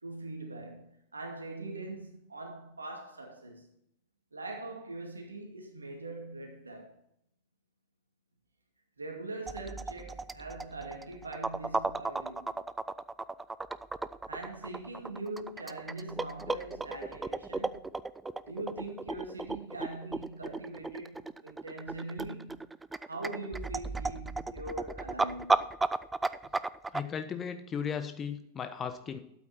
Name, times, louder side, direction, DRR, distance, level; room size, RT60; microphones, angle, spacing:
voice 1, 0.0-3.7 4.3-7.0 9.0-12.6 14.3-17.8 18.5-22.6 23.1-25.7, right 2 dB, 80° right, 2.3 m, -42 dB
sound 1, 9.5-27.0, right 3 dB, 10° right, 0.4 m, -34 dB
voice 2, 26.9-29.2, left 7 dB, 25° left, 1.2 m, -36 dB
12.0 x 8.8 x 4.4 m
figure-of-eight pair, 90°, 0 cm